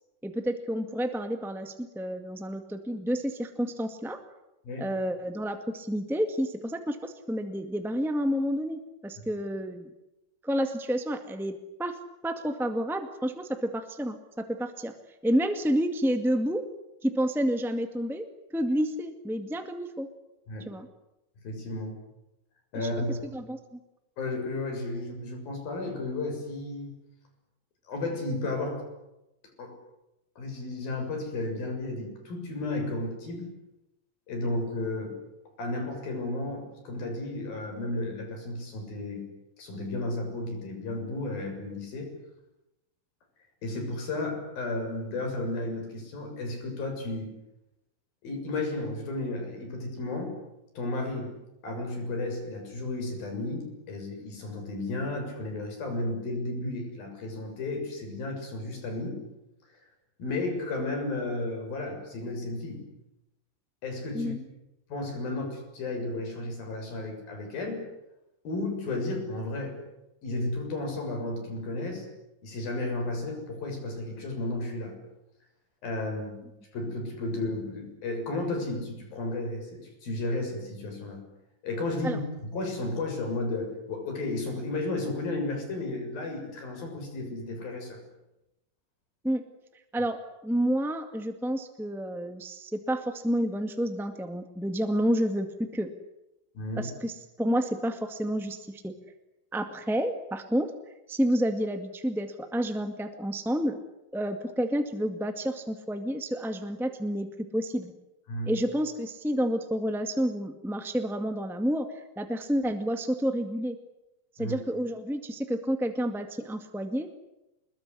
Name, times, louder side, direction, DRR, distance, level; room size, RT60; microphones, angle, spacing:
voice 1, 0.2-4.2 4.8-9.9 10.4-12.0 12.2-14.9 15.2-16.6 17.0-18.3 18.5-20.1 20.6-20.9 22.7-23.8 64.1-64.4 82.0-82.2 89.2-89.4 89.9-95.9 96.8-98.9 99.5-100.7 101.1-103.8 104.1-107.3 107.5-107.9 108.4-113.8 114.3-117.1, equal, ahead, 7 dB, 0.8 m, -30 dB
voice 2, 21.4-22.0 22.7-23.2 24.2-27.0 27.9-28.9 29.6-29.8 30.4-33.5 34.3-35.2 35.6-39.3 39.6-42.1 43.6-47.3 48.2-50.4 50.8-51.4 51.6-59.2 60.2-62.8 63.8-64.3 64.9-67.8 68.5-69.8 70.2-72.1 72.4-75.0 75.8-76.4 76.7-81.2 81.6-88.0 96.6-96.9 108.3-108.5 114.4-114.6, left 2 dB, 90° left, 4 dB, 8.6 m, -33 dB
26.5 x 22.0 x 9.8 m, 0.93 s
omnidirectional pair, 4.0 m